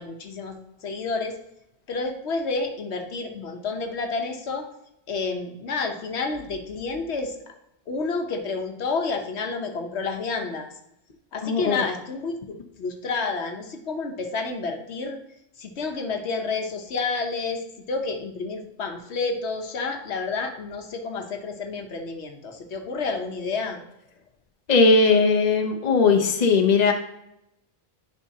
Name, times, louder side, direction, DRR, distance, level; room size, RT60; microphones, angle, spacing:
voice 1, 0.0-1.3 1.9-4.7 5.1-7.4 7.9-10.7 11.3-15.2 15.6-17.6 17.9-23.8, left 4 dB, 90° left, 4 dB, 1.2 m, -30 dB
voice 2, 11.4-11.8 24.7-26.9, left 4 dB, 45° left, 4 dB, 0.9 m, -19 dB
10.0 x 5.6 x 2.8 m, 0.82 s
omnidirectional pair, 1.1 m